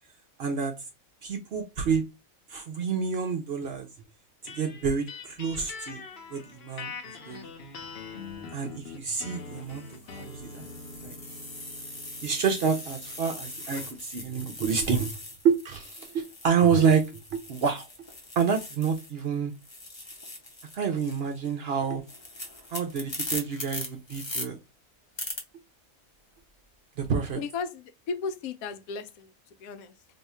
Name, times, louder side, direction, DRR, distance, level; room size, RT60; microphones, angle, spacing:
voice 1, 0.4-0.7 1.2-2.0 2.5-3.9 4.4-6.0 6.3-6.9 7.3-7.5 8.5-10.7 11.0-11.2 12.2-15.1 15.4-17.0 17.3-17.9 18.4-19.5 20.7-22.0 22.7-24.6 27.0-27.4, right 6 dB, 65° right, 0.6 m, -28 dB
sound 1, 4.5-14.0, left 4 dB, 55° left, 0.9 m, -44 dB
sound 2, 8.1-8.3 9.1-19.3 19.5-24.5 25.2-25.4, left 2 dB, 30° left, 0.6 m, -40 dB
voice 2, 27.3-29.3 29.6-29.9, left 5 dB, 85° left, 1.0 m, -35 dB
2.7 x 2.3 x 4.1 m
omnidirectional pair, 1.4 m